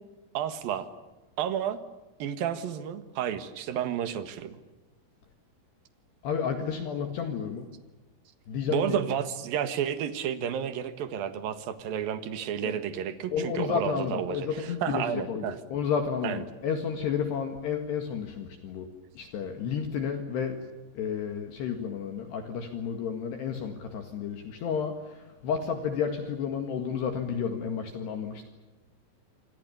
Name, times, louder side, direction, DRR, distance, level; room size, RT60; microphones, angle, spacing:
voice 1, 0.3-0.9 1.4-1.8 2.2-4.6 8.7-15.6 16.2-16.4, right 9 dB, 60° right, 10 dB, 2.7 m, -31 dB
voice 2, 6.2-7.7 8.5-9.0 12.6-12.8 13.3-15.5 15.7-18.9 19.2-20.6 21.0-28.5, left 7 dB, 65° left, 6 dB, 3.6 m, -31 dB
28.0 x 25.5 x 7.0 m, 1.2 s
omnidirectional pair, 5.9 m